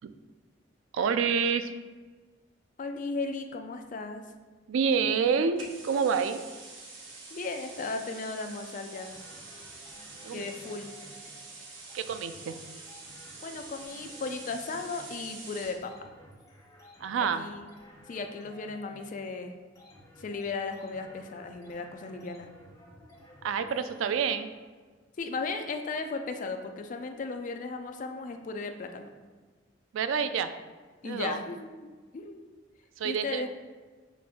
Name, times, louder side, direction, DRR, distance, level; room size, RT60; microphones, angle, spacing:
voice 1, 0.9-1.7 4.7-6.4 10.2-10.5 11.9-12.6 17.0-17.4 23.4-24.5 29.9-30.5 31.0-31.4 33.0-33.4, right 6 dB, 85° right, 11 dB, 0.3 m, -28 dB
voice 2, 2.8-4.2 7.3-9.1 10.3-10.9 13.4-16.1 17.2-17.7 18.1-19.5 20.2-22.5 25.2-29.1 31.0-32.4 33.0-33.5, left 3 dB, 40° left, 6 dB, 0.3 m, -36 dB
sound 1, 5.6-15.8, right 3 dB, 70° right, 0.7 m, -46 dB
sound 2, 8.9-24.7, equal, 15° left, 0.9 m, -54 dB
5.9 x 2.5 x 3.5 m, 1.4 s
head